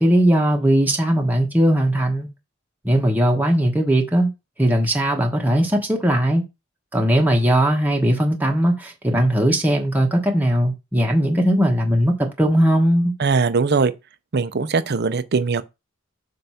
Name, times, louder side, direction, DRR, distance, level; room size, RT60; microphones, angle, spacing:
voice 1, 0.0-2.3 2.8-4.3 4.6-6.4 6.9-13.1, equal, 10° right, 1.1 m, -19 dB
voice 2, 13.2-13.9 14.3-15.6, right 4 dB, 55° right, 0.6 m, -20 dB
7.7 x 2.6 x 5.6 m
head